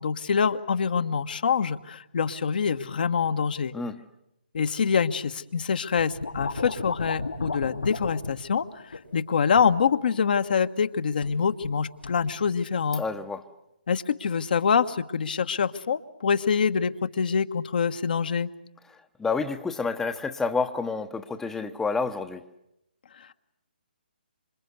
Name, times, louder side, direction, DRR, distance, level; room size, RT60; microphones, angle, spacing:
voice 1, 0.0-3.7 4.5-13.0 13.9-18.5 23.2-23.3, left 6 dB, 60° left, 1.3 m, -25 dB
sound 1, 6.0-8.4 8.9-9.2 9.6-9.8 11.2-11.8 12.0-12.2, left 3 dB, 80° left, 4.6 m, -34 dB
voice 2, 13.0-13.4 19.2-22.4, left 4 dB, 5° left, 1.0 m, -29 dB
27.0 x 24.5 x 8.1 m
figure-of-eight pair, 140°, 6 cm